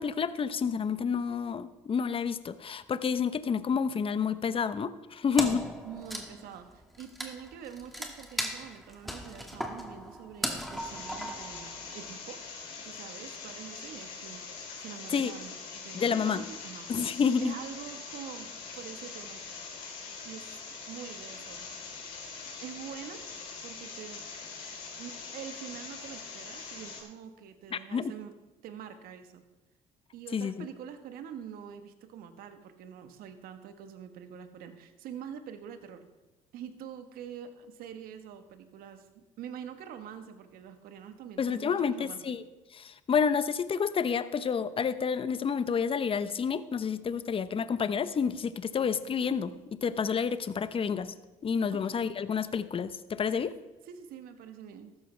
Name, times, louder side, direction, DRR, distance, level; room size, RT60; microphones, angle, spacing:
voice 1, 0.0-5.6 15.1-15.3 15.9-16.4 16.9-17.6 27.7-28.1 30.3-30.7 41.4-42.4 42.7-51.1 51.4-53.5, left 6 dB, 35° left, 13 dB, 0.8 m, -29 dB
voice 2, 5.3-12.4 12.8-14.5 14.8-16.9 17.4-19.4 20.2-20.5 20.9-21.7 22.6-23.3 23.6-24.2 25.0-28.3 28.6-29.4 30.1-36.1 36.5-42.4 51.7-51.9 53.8-54.9, right 8 dB, 70° right, 9 dB, 1.3 m, -45 dB
Wood, 5.4-12.1, equal, ahead, 1.9 m, -38 dB
sound 1, 10.8-27.0, left 5 dB, 70° left, 3.8 m, -43 dB
14.5 x 12.5 x 3.3 m, 1.1 s
hypercardioid pair, 65°, 16 cm